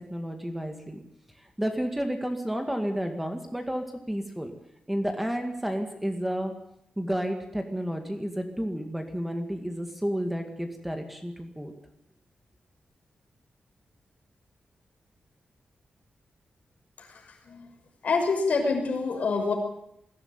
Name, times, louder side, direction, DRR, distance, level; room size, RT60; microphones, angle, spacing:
voice 1, 0.1-1.0 1.4-4.5 4.9-6.5 7.0-11.7, equal, 5° right, 4 dB, 2.1 m, -31 dB
voice 2, 17.0-17.7 18.0-19.5, left 4 dB, 60° left, 2 dB, 6.1 m, -27 dB
21.5 x 16.0 x 8.9 m, 0.75 s
wide cardioid pair, 160°, 3 cm